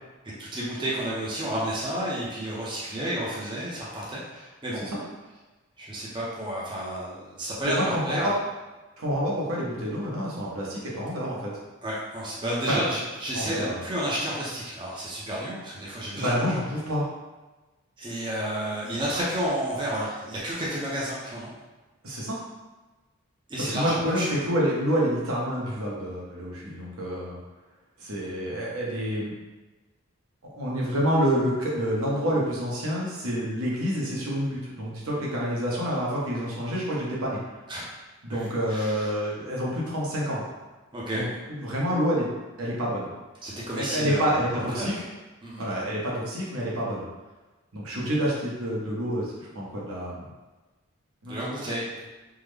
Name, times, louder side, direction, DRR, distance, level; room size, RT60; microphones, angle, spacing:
voice 1, 0.4-4.8 5.8-8.3 11.8-16.5 18.0-21.5 23.5-24.3 37.7-37.8 38.3-38.4 38.7-39.1 40.9-41.2 43.4-45.0 45.4-45.7 51.3-51.9, right 1 dB, 20° right, -7 dB, 0.6 m, -31 dB
voice 2, 7.6-8.3 9.0-11.5 12.7-12.8 13.3-13.8 16.1-17.1 22.0-22.4 23.6-27.4 28.0-29.3 30.4-37.4 38.2-40.4 41.1-43.1 43.8-44.9 45.6-47.0 47.7-50.2 51.2-51.7, equal, 80° right, -5 dB, 0.9 m, -28 dB
3.6 x 2.1 x 3.3 m, 1.2 s
head